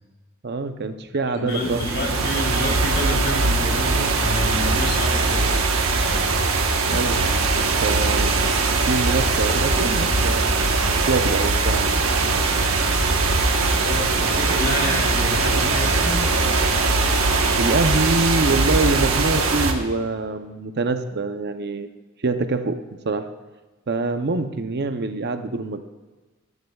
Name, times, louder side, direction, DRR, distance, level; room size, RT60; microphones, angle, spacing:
voice 1, 0.4-1.8 6.9-8.4 8.9-12.1 17.6-21.9 22.2-23.3 23.9-25.8, right 3 dB, 50° right, 8 dB, 0.7 m, -25 dB
voice 2, 1.3-5.6 13.8-16.2, left 1 dB, 55° left, -1 dB, 3.5 m, -28 dB
sound 1, 1.5-19.7, right 3 dB, 65° right, 1.2 m, -21 dB
17.5 x 12.0 x 2.4 m, 1.2 s
head